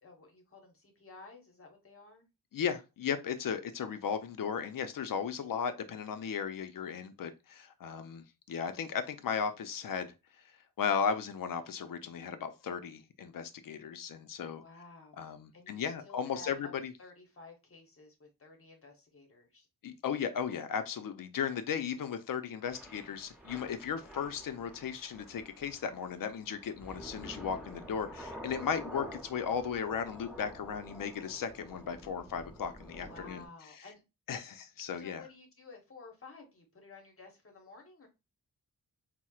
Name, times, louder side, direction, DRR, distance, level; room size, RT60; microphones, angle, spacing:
voice 1, 0.0-2.3 14.6-16.7 17.0-19.7 33.0-34.0 35.0-38.1, left 3 dB, 35° left, 1.0 m, -53 dB
voice 2, 2.5-10.1 10.8-14.6 15.2-16.9 19.8-33.5 34.3-35.2, left 7 dB, 60° left, 0.5 m, -36 dB
Thunder / Rain, 22.6-33.5, equal, 5° right, 1.0 m, -49 dB
4.2 x 2.1 x 2.3 m
wide cardioid pair, 110°, 37 cm